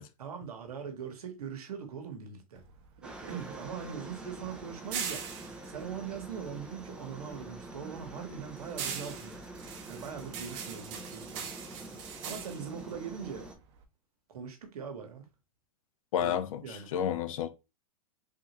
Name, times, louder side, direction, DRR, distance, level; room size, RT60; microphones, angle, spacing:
voice 1, 0.2-2.6 3.3-5.3 5.6-9.4 9.9-11.5 12.2-13.5 14.3-15.3 16.2-16.4 16.6-16.9, right 7 dB, 85° right, 1.1 m, -41 dB
sound 1, 2.5-7.1 7.4-13.8, right 7 dB, 50° right, 0.9 m, -42 dB
Aircraft, 3.0-13.6, right 1 dB, 5° right, 0.5 m, -46 dB
voice 2, 16.1-17.5, left 9 dB, 65° left, 0.6 m, -31 dB
3.6 x 2.8 x 2.8 m
hypercardioid pair, 130°, 19 cm